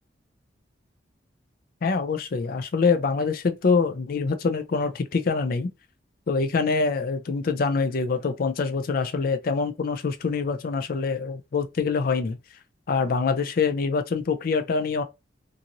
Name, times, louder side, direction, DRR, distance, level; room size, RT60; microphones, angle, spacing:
voice 1, 1.8-5.7 6.3-12.4 12.9-15.0, left 4 dB, 50° left, 0.4 m, -25 dB
2.9 x 2.6 x 2.5 m
head